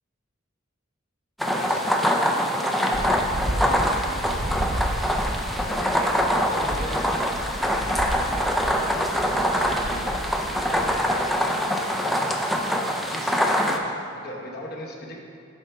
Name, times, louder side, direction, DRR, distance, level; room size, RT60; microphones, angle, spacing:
sound 1, 1.4-13.8, equal, ahead, 0.4 m, -24 dB
voice 1, 1.5-4.9 5.5-12.1 12.6-13.3 13.6-15.2, left 1 dB, 50° left, -2 dB, 1.0 m, -38 dB
sound 2, 2.9-11.0, equal, 65° right, 0.9 m, -32 dB
8.7 x 3.4 x 5.5 m, 2.4 s
head